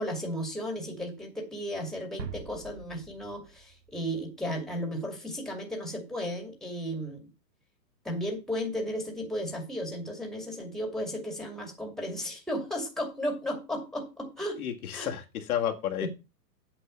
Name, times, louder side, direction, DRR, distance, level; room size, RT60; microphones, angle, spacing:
voice 1, 0.0-7.2 8.0-14.6 14.9-15.1 16.0-16.1, equal, ahead, 3 dB, 2.3 m, -34 dB
sound 1, 2.2-4.7, right 5 dB, 85° right, 2.3 m, -44 dB
voice 2, 14.6-16.1, left 10 dB, 60° left, 3 dB, 1.9 m, -31 dB
8.5 x 5.4 x 6.7 m, 0.27 s
hypercardioid pair, 145°, 50 cm